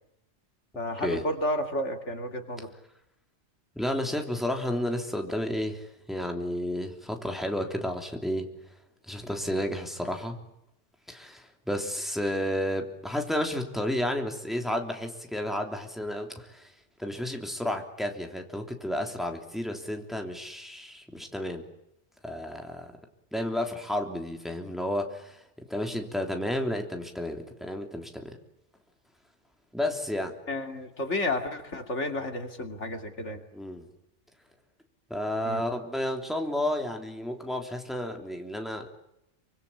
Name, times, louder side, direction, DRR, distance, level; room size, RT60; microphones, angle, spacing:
voice 1, 0.8-2.7 30.5-33.4 35.5-35.6, left 1 dB, 80° left, 5 dB, 3.0 m, -31 dB
voice 2, 3.7-8.5 9.1-10.4 11.1-16.7 17.0-21.6 22.2-22.9 23.3-25.4 25.7-28.4 29.7-30.4 33.5-33.9 35.1-38.9, left 1 dB, ahead, 3 dB, 3.3 m, -31 dB
27.0 x 25.5 x 8.7 m, 0.80 s
omnidirectional pair, 1.2 m